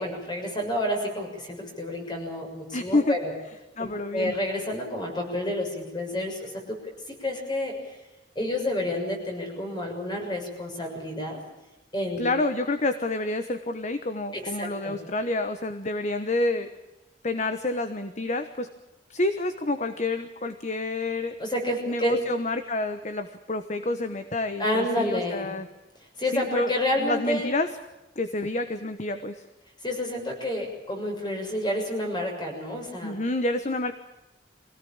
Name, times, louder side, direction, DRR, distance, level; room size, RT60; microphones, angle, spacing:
voice 1, 0.0-3.3 4.1-7.7 8.3-11.4 11.9-12.3 14.3-14.9 21.4-22.2 24.6-25.5 26.2-27.5 29.8-33.1, left 1 dB, 25° left, 2 dB, 6.7 m, -29 dB
voice 2, 2.7-3.1 3.8-4.4 12.2-16.7 17.2-18.7 19.1-21.3 21.9-25.7 26.3-26.7 27.0-27.7 28.2-29.4 33.0-33.9, left 2 dB, 40° left, 8 dB, 1.2 m, -28 dB
24.0 x 17.5 x 8.8 m, 1.0 s
head